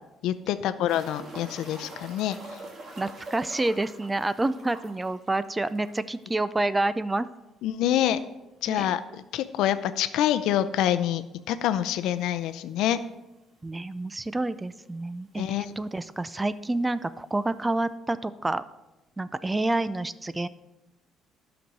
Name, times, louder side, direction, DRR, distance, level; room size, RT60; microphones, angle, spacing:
voice 1, 0.2-2.6 7.6-8.2 8.6-13.0 15.4-15.7, left 11 dB, 80° left, 11 dB, 0.5 m, -26 dB
sound 1, 0.9-6.2 6.5-6.6 7.0-7.1 9.9-10.0 11.6-11.7 12.5-12.6 12.8-12.9 13.8-13.9 14.1-14.7 15.7-15.8, right 2 dB, 45° right, 1.8 m, -44 dB
voice 2, 3.0-7.3 8.7-8.9 13.6-18.6 19.2-20.5, right 2 dB, 15° right, 15 dB, 0.4 m, -28 dB
11.5 x 6.1 x 5.4 m, 0.99 s
cardioid pair, 120°, 0 cm